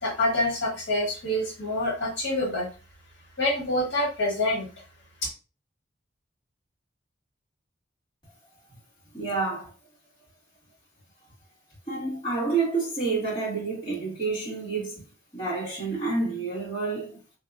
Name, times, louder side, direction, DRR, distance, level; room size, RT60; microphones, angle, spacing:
voice 1, 0.0-2.7 3.4-4.7, left 1 dB, 70° left, 1.6 m, -26 dB
voice 2, 9.1-9.7 11.9-15.0 15.3-17.2, right 4 dB, 25° left, 1.6 m, -29 dB
3.8 x 2.7 x 2.4 m
head